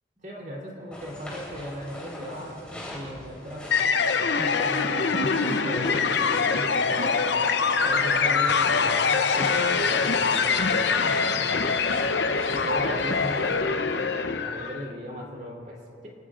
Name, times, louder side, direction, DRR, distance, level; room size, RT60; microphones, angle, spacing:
voice 1, 0.2-7.3 7.8-11.9 12.5-16.1, equal, 40° right, -2 dB, 3.4 m, -37 dB
sound 1, 0.9-13.6, left 1 dB, 5° left, 3.6 m, -41 dB
sound 2, 3.7-14.9, left 5 dB, 60° left, 0.8 m, -24 dB
27.0 x 18.0 x 2.5 m, 2.8 s
head